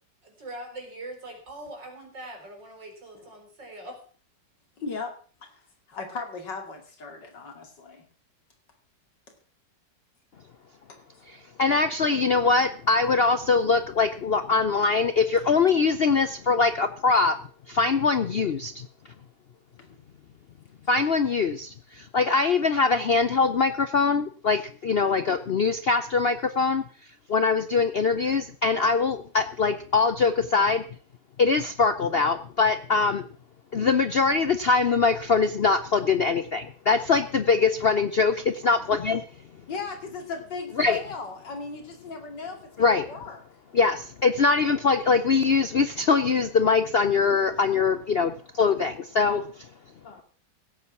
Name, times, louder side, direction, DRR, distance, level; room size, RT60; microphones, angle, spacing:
voice 1, 0.2-4.0, right 1 dB, 90° right, 3 dB, 4.8 m, -42 dB
voice 2, 4.8-5.1 5.4-5.5 5.9-8.1 10.9-11.0 19.8-19.9 28.2-28.3 39.7-43.4 50.0-50.2, left 4 dB, 80° left, 4 dB, 3.2 m, -37 dB
voice 3, 11.6-17.4 17.7-18.9 20.9-26.8 27.3-30.8 31.4-33.2 33.7-39.2 40.8-41.0 42.8-43.1 43.7-49.4, left 4 dB, 60° left, 11 dB, 0.6 m, -23 dB
16.5 x 8.6 x 6.0 m, 0.42 s
omnidirectional pair, 1.9 m